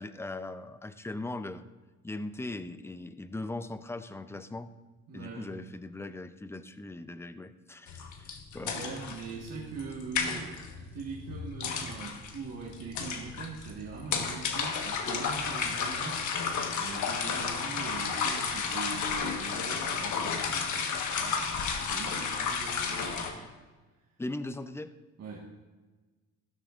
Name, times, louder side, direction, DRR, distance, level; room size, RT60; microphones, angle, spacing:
voice 1, 0.0-1.6 2.0-4.7 5.1-8.8 24.2-24.9, left 2 dB, 10° left, 12 dB, 0.5 m, -39 dB
voice 2, 5.1-5.5 8.6-16.4 16.7-23.5 25.2-25.5, right 4 dB, 55° right, -3 dB, 1.7 m, -42 dB
sound 1, 7.9-23.3, left 5 dB, 75° left, 1.4 m, -33 dB
14.5 x 13.0 x 2.5 m, 1.3 s
cardioid pair, 90°, 30 cm